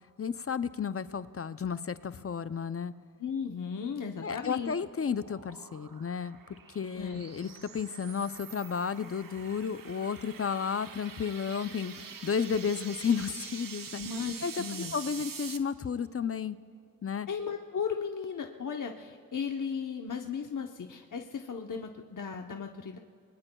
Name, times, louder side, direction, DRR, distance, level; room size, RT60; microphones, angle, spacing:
voice 1, 0.2-2.9 4.2-6.4 6.7-14.0 14.4-14.5 14.9-16.6 17.0-17.3, left 6 dB, 40° left, 13 dB, 0.5 m, -32 dB
voice 2, 3.2-4.7 6.9-7.2 14.0-14.9 17.3-23.0, left 6 dB, 60° left, 3 dB, 0.9 m, -36 dB
sound 1, 4.1-15.6, right 6 dB, 70° right, 0.9 m, -46 dB
29.5 x 21.0 x 2.3 m, 2.5 s
cardioid pair, 45°, 35 cm